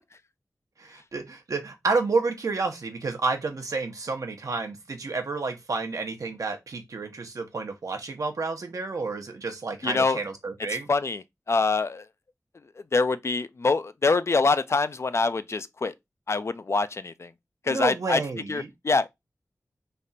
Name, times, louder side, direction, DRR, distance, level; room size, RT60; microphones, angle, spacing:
voice 1, 0.8-10.9 17.7-18.7, right 4 dB, 80° right, 0.8 m, -30 dB
voice 2, 9.8-10.2 10.9-12.1 12.9-15.9 16.3-17.3 17.6-18.2 18.5-19.1, left 3 dB, 50° left, 0.4 m, -25 dB
3.3 x 2.4 x 4.0 m
wide cardioid pair, 60°, 6 cm